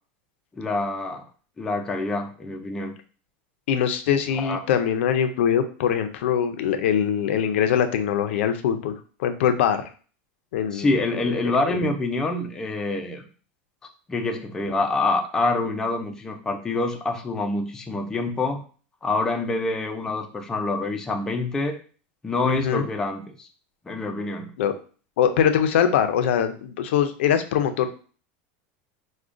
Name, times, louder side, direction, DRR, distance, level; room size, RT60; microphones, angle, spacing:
voice 1, 0.6-1.3 1.6-2.9 4.4-4.6 10.7-13.2 14.1-18.6 19.0-21.8 22.2-23.5 23.9-24.5, left 2 dB, 10° left, 3 dB, 0.3 m, -26 dB
voice 2, 3.7-8.9 9.2-9.8 10.5-10.9 11.2-11.3 11.7-11.8 22.4-22.8 24.6-24.8 25.2-27.9, left 8 dB, 90° left, 8 dB, 0.4 m, -22 dB
4.8 x 2.1 x 2.4 m, 0.40 s
supercardioid pair, 160°, 6 cm